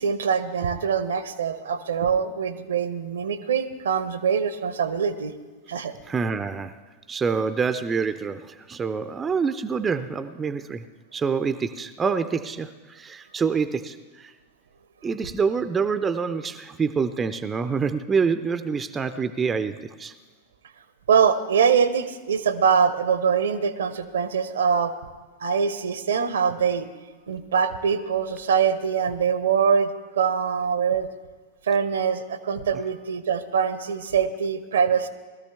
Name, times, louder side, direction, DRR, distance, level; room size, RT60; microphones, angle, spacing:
voice 1, 0.0-5.3 5.7-5.9 21.1-24.9 25.4-26.9 27.3-29.9 30.2-31.1 31.6-35.1, right 6 dB, 65° right, 14 dB, 0.7 m, -23 dB
voice 2, 6.0-6.8 7.1-10.8 11.1-14.3 15.0-20.1, right 5 dB, 20° right, 11 dB, 0.5 m, -26 dB
20.0 x 13.0 x 3.5 m, 1.3 s
figure-of-eight pair, 90°, 0 cm